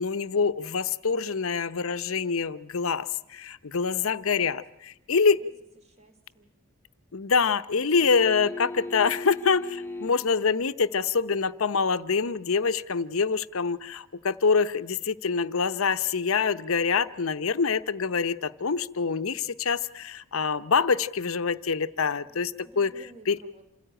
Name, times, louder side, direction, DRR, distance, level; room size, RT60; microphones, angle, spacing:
voice 1, 0.0-5.4 7.1-22.9 23.3-23.4, left 5 dB, 80° left, 13 dB, 0.8 m, -25 dB
voice 2, 5.8-6.5 22.2-23.6, right 1 dB, 30° right, 7 dB, 2.8 m, -54 dB
sound 1, 8.0-10.3 12.9-13.0, left 2 dB, 10° left, 1.0 m, -37 dB
27.5 x 15.0 x 8.9 m, 0.90 s
head